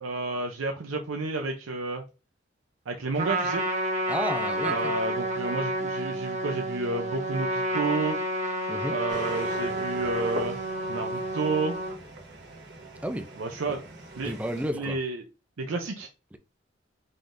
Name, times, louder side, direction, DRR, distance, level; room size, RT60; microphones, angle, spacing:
voice 1, 0.0-2.0 2.9-3.6 4.6-8.2 8.9-10.6 10.9-11.8 13.4-13.8 14.2-14.3 14.7-15.2 15.6-16.1, right 3 dB, 90° right, 0.6 m, -30 dB
Trumpet, 3.1-11.9, right 1 dB, 35° right, 1.1 m, -30 dB
voice 2, 4.1-4.9 8.7-9.0 13.0-13.3 14.2-15.0 16.3-16.4, equal, 5° right, 0.4 m, -31 dB
sound 1, 9.1-14.7, right 1 dB, 60° right, 1.1 m, -41 dB
5.7 x 3.6 x 2.6 m
head